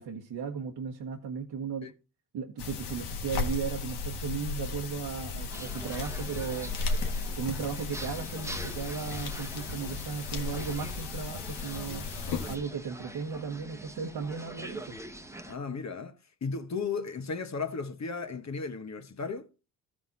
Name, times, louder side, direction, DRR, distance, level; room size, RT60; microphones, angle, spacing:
voice 1, 0.0-1.9 2.3-6.7 7.4-12.1 12.4-15.0, right 6 dB, 65° right, 1.4 m, -36 dB
sound 1, 2.6-12.6, left 4 dB, 75° left, 1.6 m, -35 dB
sound 2, 5.5-15.6, right 1 dB, 5° right, 1.1 m, -44 dB
voice 2, 15.4-19.5, left 4 dB, 40° left, 1.3 m, -35 dB
14.0 x 5.0 x 4.0 m
supercardioid pair, 55°, 41 cm